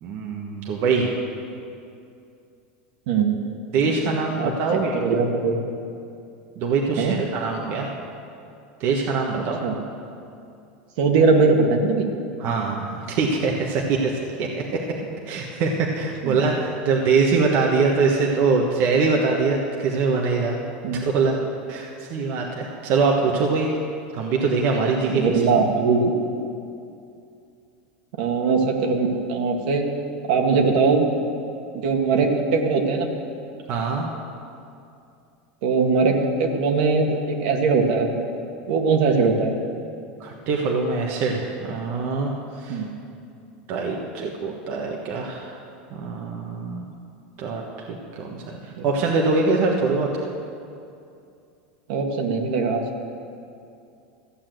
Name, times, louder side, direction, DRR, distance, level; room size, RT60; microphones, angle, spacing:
voice 1, 0.0-1.1 3.7-4.9 6.6-7.9 8.8-9.6 12.4-14.1 14.4-14.6 15.3-20.6 20.9-21.4 21.7-23.7 24.1-25.4 33.7-34.1 40.2-42.3 42.6-42.8 43.7-45.5 46.0-46.8 47.4-47.6 48.2-48.6 48.8-50.3, right 4 dB, 45° right, -1 dB, 1.3 m, -23 dB
voice 2, 4.4-5.6 7.0-7.2 9.6-9.8 11.0-12.1 16.2-16.4 20.8-21.0 25.1-26.1 28.2-29.9 30.3-31.1 31.7-33.1 35.6-38.2 38.7-39.6 42.7-42.9 48.8-48.9 51.9-52.8, right 4 dB, 65° right, 2 dB, 1.8 m, -21 dB
14.5 x 8.6 x 7.7 m, 2.6 s
supercardioid pair, 150°, 5 cm